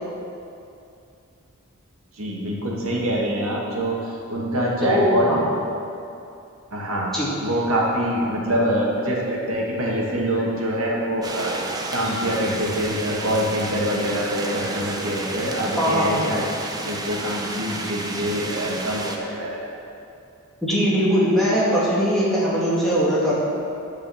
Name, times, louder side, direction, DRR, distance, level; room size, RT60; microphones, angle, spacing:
voice 1, 2.2-5.4 6.7-7.1 7.4-11.6 11.9-16.4 16.8-19.8, equal, 75° right, -3 dB, 1.8 m, -25 dB
voice 2, 4.8-5.4 7.1-7.3 15.8-16.2 20.6-23.3, equal, ahead, -9 dB, 2.2 m, -20 dB
sound 1, 11.2-19.2, right 2 dB, 15° right, 0.6 m, -31 dB
9.9 x 5.0 x 7.1 m, 2.6 s
head